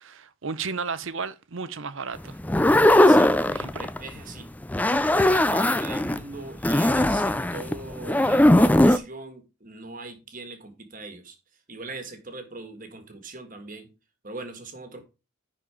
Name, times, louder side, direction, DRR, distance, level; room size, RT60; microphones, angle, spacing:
voice 1, 0.0-2.4 3.5-3.9, right 5 dB, 65° right, 0.7 m, -33 dB
sound 1, 2.4-4.1 4.6-6.2 6.6-9.0, left 1 dB, 5° left, 0.3 m, -19 dB
voice 2, 3.0-3.5 3.8-4.5 5.1-11.4 11.7-13.9 14.2-15.0, right 3 dB, 40° right, 1.6 m, -40 dB
10.0 x 4.4 x 4.9 m
head